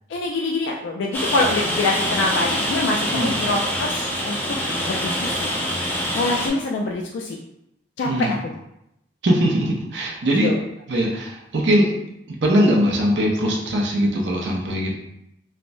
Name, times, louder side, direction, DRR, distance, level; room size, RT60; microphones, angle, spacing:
voice 1, 0.1-4.4 4.8-5.5 6.0-7.4 8.0-8.3 10.3-10.6, left 2 dB, 80° left, 0 dB, 0.3 m, -25 dB
Rain, 1.1-6.5, equal, 10° left, 0.4 m, -25 dB
voice 2, 3.0-3.3 8.0-8.4 9.2-10.5 10.9-11.9 12.3-14.9, equal, 70° right, -1 dB, 0.5 m, -21 dB
3.3 x 2.0 x 2.5 m, 0.82 s
head